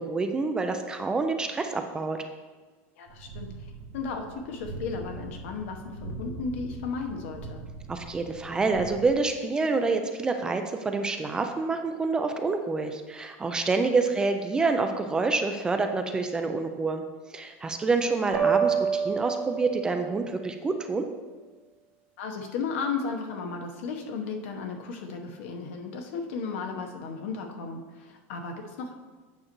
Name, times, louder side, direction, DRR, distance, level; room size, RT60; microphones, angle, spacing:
voice 1, 0.0-2.2 7.9-17.0 17.3-21.1, right 3 dB, 10° right, 6 dB, 0.3 m, -27 dB
voice 2, 3.0-3.5 3.9-7.7 13.8-13.9 22.2-28.9, left 5 dB, 70° left, 3 dB, 1.0 m, -34 dB
sound 1, 3.1-9.1, right 3 dB, 40° right, 0.9 m, -42 dB
sound 2, 18.3-20.2, right 6 dB, 80° right, 1.3 m, -27 dB
8.6 x 6.4 x 3.0 m, 1.3 s
supercardioid pair, 170°, 7 cm